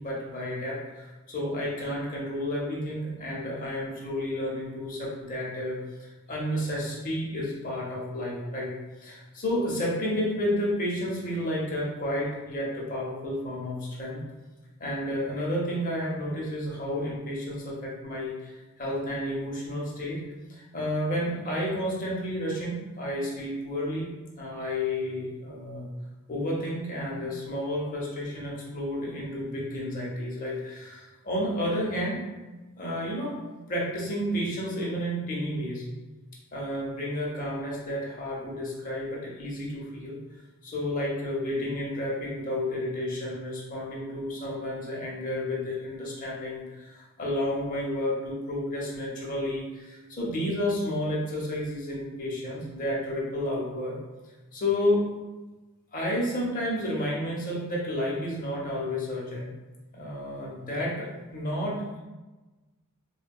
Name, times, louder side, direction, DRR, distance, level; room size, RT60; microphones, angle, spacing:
voice 1, 0.0-8.7 9.0-14.2 14.8-18.5 18.8-20.2 20.5-24.1 24.4-25.9 26.3-32.2 32.8-33.4 33.7-35.8 36.5-40.2 40.6-54.0 54.5-55.1 55.9-59.5 59.9-62.0, left 1 dB, 40° left, -4 dB, 0.7 m, -31 dB
3.5 x 2.2 x 2.2 m, 1.2 s
head